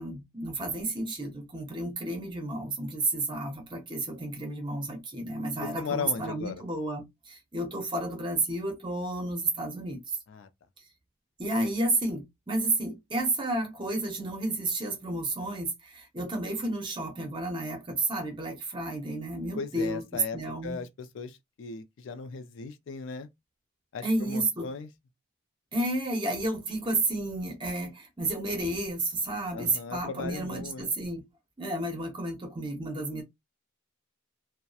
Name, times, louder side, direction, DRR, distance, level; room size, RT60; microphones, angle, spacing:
voice 1, 0.0-10.0 11.4-20.8 24.0-24.7 25.7-31.2 31.6-33.2, right 2 dB, 20° right, 0.7 m, -31 dB
voice 2, 5.6-6.6 10.3-10.5 19.5-23.3 23.9-24.9 29.5-30.9, left 5 dB, 65° left, 0.4 m, -37 dB
2.7 x 2.0 x 2.3 m
head